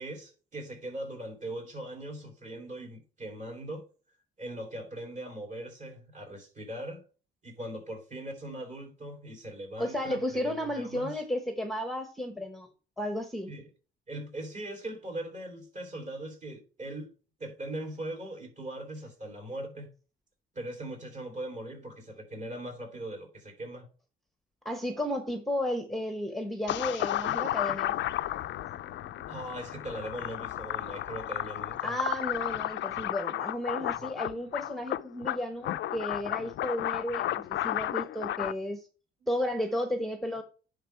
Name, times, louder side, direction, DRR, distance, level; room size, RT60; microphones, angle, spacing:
voice 1, 0.0-3.8 4.4-7.0 7.4-11.2 13.5-13.7 14.1-17.1 17.4-19.9 20.5-23.9 28.7-31.9 39.2-39.3, right 1 dB, 35° right, 3.6 m, -40 dB
voice 2, 9.8-12.7 13.0-13.5 24.6-27.9 31.8-38.9 39.3-40.4, left 1 dB, ahead, 1.0 m, -33 dB
sound 1, 26.7-38.5, left 13 dB, 65° left, 0.4 m, -33 dB
10.5 x 3.6 x 4.5 m
cardioid pair, 120°, 20 cm